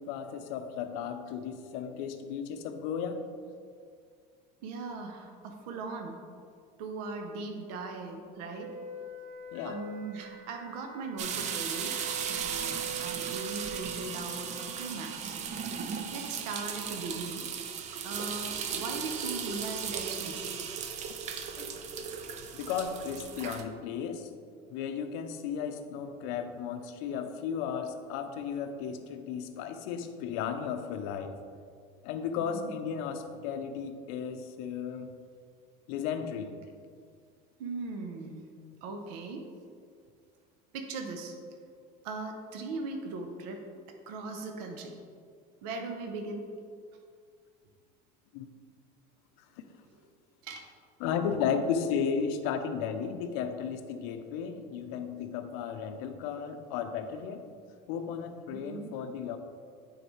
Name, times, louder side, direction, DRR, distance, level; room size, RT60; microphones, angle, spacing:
voice 1, 0.0-3.3 9.5-9.8 12.7-12.8 21.5-21.7 22.5-24.3 24.7-31.4 32.0-35.1 35.9-36.6 48.3-48.5 51.0-57.5 57.9-59.4, left 7 dB, 75° left, 7 dB, 0.6 m, -34 dB
voice 2, 4.6-6.2 6.8-8.7 9.6-12.0 12.3-15.4 16.1-17.4 18.0-20.6 32.4-32.7 37.6-38.4 38.8-39.5 40.7-41.4 42.0-43.6 44.1-44.9 45.6-46.4 50.4-50.7 58.5-58.9, right 3 dB, 85° right, 4 dB, 0.8 m, -39 dB
Wind instrument woodwind instrument, 8.5-14.0, right 4 dB, 55° right, 1.0 m, -43 dB
sound 1, 11.2-23.6, right 7 dB, 35° right, 0.5 m, -36 dB
9.4 x 3.9 x 3.1 m, 2.1 s
cardioid pair, 140°, 20 cm